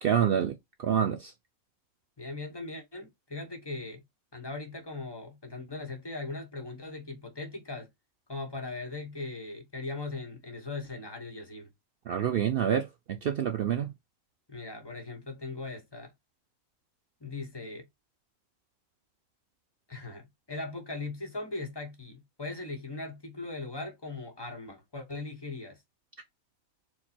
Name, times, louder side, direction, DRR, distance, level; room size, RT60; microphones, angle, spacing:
voice 1, 0.0-1.3 12.1-13.9, right 9 dB, 80° right, 0.5 m, -27 dB
voice 2, 2.2-4.0 4.3-7.9 8.3-11.7 14.5-16.1 17.2-17.9 19.9-25.8, left 3 dB, 20° left, 1.0 m, -39 dB
4.6 x 2.2 x 4.2 m
omnidirectional pair, 1.5 m